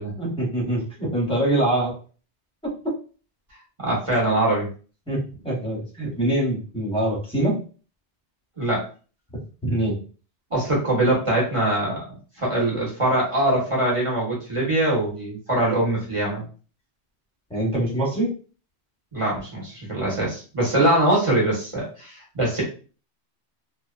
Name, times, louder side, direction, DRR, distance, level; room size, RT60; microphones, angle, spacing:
voice 1, 0.2-1.9 2.6-2.9 5.1-7.6 9.6-10.0 17.5-18.3, right 1 dB, 5° left, -3 dB, 0.9 m, -24 dB
voice 2, 3.8-4.7 8.6-8.8 10.5-12.0 12.4-16.4 19.1-22.6, right 1 dB, 30° right, -5 dB, 1.0 m, -22 dB
2.7 x 2.2 x 2.4 m, 0.38 s
omnidirectional pair, 1.1 m